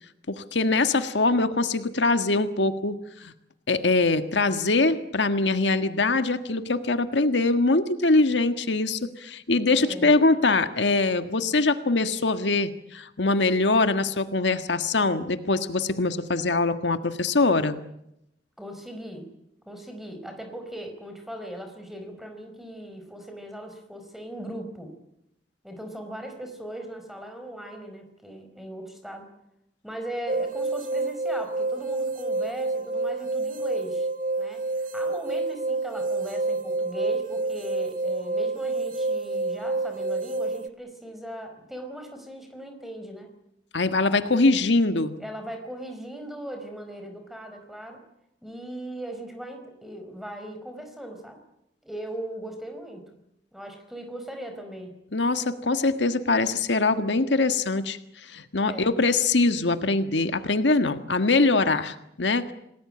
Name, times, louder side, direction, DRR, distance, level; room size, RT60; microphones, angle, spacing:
voice 1, 0.3-3.3 3.7-17.8 43.7-45.1 55.1-62.5, left 3 dB, 85° left, 9 dB, 1.6 m, -23 dB
voice 2, 9.8-10.1 18.6-19.3 19.6-24.9 25.6-29.3 29.8-34.1 34.4-43.3 45.2-48.0 48.4-51.4 51.8-53.1 53.5-55.0 58.7-58.9, right 1 dB, ahead, 5 dB, 4.8 m, -39 dB
sound 1, 30.3-40.7, right 2 dB, 50° right, 1.1 m, -28 dB
28.0 x 19.5 x 8.8 m, 0.82 s
head